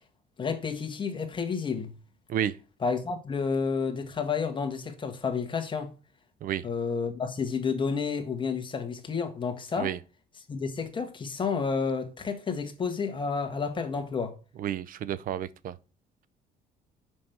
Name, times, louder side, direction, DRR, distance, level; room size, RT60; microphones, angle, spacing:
voice 1, 0.4-1.9 2.8-5.9 6.6-9.9 10.5-14.3, left 5 dB, 30° left, 1.6 m, -30 dB
voice 2, 14.6-15.8, right 10 dB, 55° right, 0.6 m, -31 dB
6.2 x 5.3 x 4.6 m
cardioid pair, 110°, 17 cm